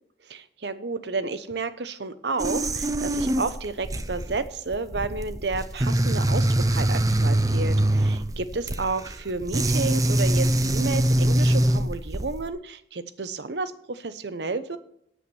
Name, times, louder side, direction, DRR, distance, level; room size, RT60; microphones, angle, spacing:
voice 1, 0.2-14.8, right 3 dB, 75° right, 13 dB, 0.8 m, -31 dB
sound 1, 2.4-12.5, right 1 dB, 20° right, 0.6 m, -24 dB
9.1 x 8.0 x 6.9 m, 0.74 s
head